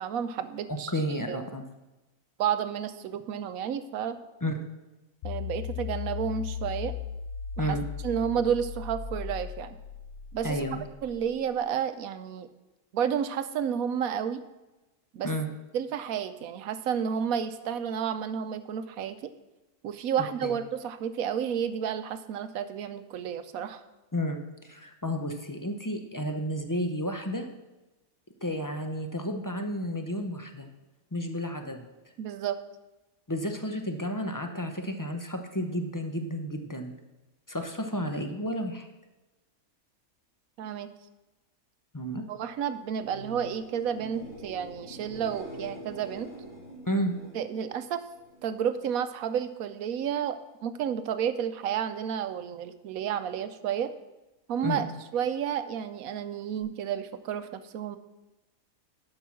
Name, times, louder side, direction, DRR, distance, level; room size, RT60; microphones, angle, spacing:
voice 1, 0.0-0.9 1.3-1.4 2.4-4.2 5.2-7.0 7.6-7.8 8.0-9.8 10.3-10.6 11.0-12.5 12.9-14.4 15.1-15.3 15.7-19.3 19.8-23.8 32.2-32.6 40.6-40.9 42.3-46.3 47.3-48.0 48.4-53.9 54.5-54.8 55.1-58.0, right 8 dB, 75° right, 11 dB, 1.1 m, -31 dB
voice 2, 0.7-1.6 4.4-4.6 7.6-7.8 10.4-10.8 15.2-15.5 20.4-20.6 24.1-24.4 24.6-27.5 28.4-30.7 31.1-31.9 33.3-36.9 37.5-38.9 41.9-42.2 46.9-47.1 54.6-54.8, equal, 20° left, 5 dB, 0.5 m, -31 dB
sound 1, 5.2-11.5, left 8 dB, 65° left, 0.6 m, -37 dB
sound 2, 42.9-48.6 49.0-49.5 56.6-56.7, equal, 40° left, 2.2 m, -45 dB
11.5 x 5.4 x 6.1 m, 1.1 s
omnidirectional pair, 1.5 m